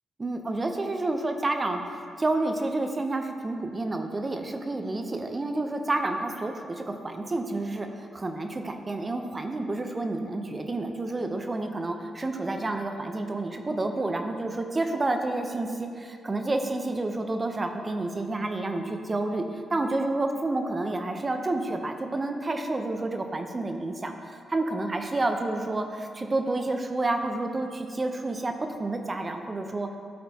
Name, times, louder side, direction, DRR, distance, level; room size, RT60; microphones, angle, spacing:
voice 1, 0.2-30.0, right 2 dB, 30° right, 5 dB, 0.7 m, -29 dB
12.0 x 4.2 x 2.9 m, 2.3 s
supercardioid pair, 55°, 0 cm